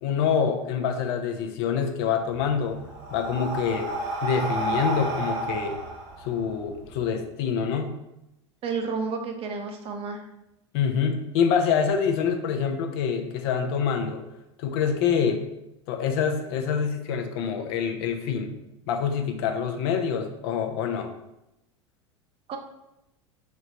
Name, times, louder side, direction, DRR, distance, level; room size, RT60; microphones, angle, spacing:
voice 1, 0.0-2.8 3.1-3.9 4.2-5.8 6.2-7.9 10.7-14.2 14.6-15.4 15.9-18.5 18.9-21.1, left 7 dB, 60° left, 5 dB, 0.6 m, -26 dB
Breathing, 2.3-7.0, right 2 dB, 65° right, 1.5 m, -31 dB
voice 2, 8.6-10.2 22.5-22.6, right 5 dB, 40° right, 5 dB, 0.7 m, -31 dB
3.2 x 3.1 x 3.8 m, 0.88 s
hypercardioid pair, 80°, 15 cm